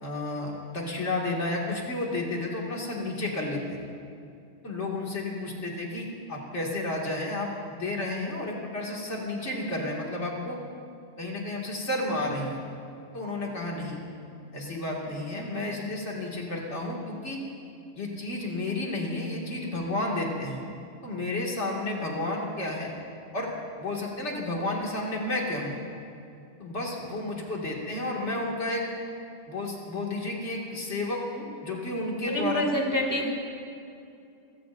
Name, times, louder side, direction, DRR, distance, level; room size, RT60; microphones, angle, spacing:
voice 1, 0.0-3.8 4.6-10.6 11.2-12.6 13.1-14.0 14.5-17.4 17.9-20.6 21.0-22.9 23.3-23.5 23.8-25.8 26.6-28.9 29.5-32.6, left 2 dB, 85° left, -3 dB, 2.5 m, -31 dB
voice 2, 32.3-33.3, equal, 15° left, -1 dB, 2.4 m, -27 dB
29.5 x 16.5 x 2.6 m, 2.6 s
omnidirectional pair, 1.2 m